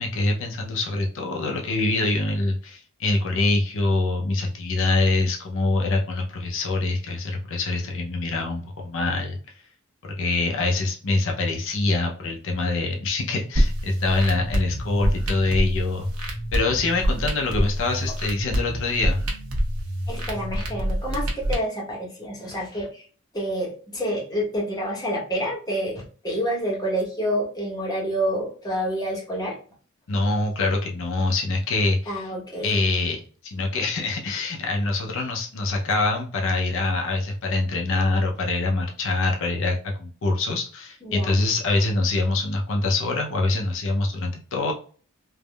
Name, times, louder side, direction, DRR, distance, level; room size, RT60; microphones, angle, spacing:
voice 1, 0.0-9.4 10.2-16.1 16.5-19.2 30.1-32.2 32.6-44.7, left 2 dB, 65° left, 1 dB, 0.5 m, -24 dB
sound 1, 13.5-21.5, equal, 90° right, 0.8 m, -26 dB
voice 2, 20.1-23.1 23.3-29.6 32.1-32.8 41.0-41.4, equal, 20° left, -3 dB, 1.0 m, -28 dB
3.4 x 2.0 x 2.2 m, 0.41 s
head